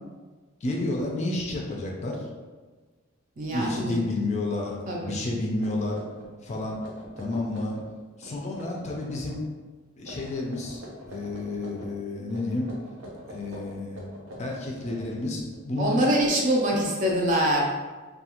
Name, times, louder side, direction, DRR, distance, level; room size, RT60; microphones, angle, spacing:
voice 1, 0.6-2.3 3.5-6.0 6.4-6.8 7.2-7.8 8.2-9.5 10.0-12.7 13.3-14.0 14.4-16.1 16.7-16.8, left 2 dB, 35° left, -1 dB, 0.4 m, -31 dB
voice 2, 3.4-4.0 4.9-5.2 15.8-17.6, right 1 dB, 40° right, -2 dB, 0.5 m, -24 dB
sound 1, 5.2-5.3 5.6-7.9 8.2-9.4 10.0-11.9 12.3-15.6, equal, 80° right, 0.6 m, -44 dB
2.4 x 2.3 x 2.9 m, 1.3 s
head